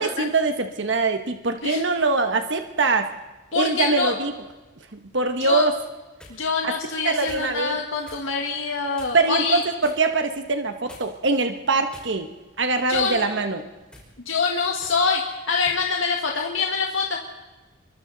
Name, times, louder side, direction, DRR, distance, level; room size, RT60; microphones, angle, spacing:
voice 1, 0.0-3.1 3.5-4.3 4.9-5.8 6.6-6.7 7.0-7.8 9.1-12.3 12.6-13.6, right 3 dB, 65° right, 7 dB, 1.2 m, -23 dB
voice 2, 3.5-4.1 5.4-5.6 6.3-9.6 12.9-13.3 14.3-17.2, left 5 dB, 80° left, 1 dB, 1.7 m, -25 dB
sound 1, 6.1-6.4 7.3-7.5 8.0-8.3 8.9-9.3 9.8-10.0 10.9-11.3 11.9-12.4 12.9-13.1 13.8-14.1 14.8-15.0 15.6-15.8, left 1 dB, 5° left, 5.2 m, -46 dB
29.0 x 23.0 x 4.0 m, 1.2 s
head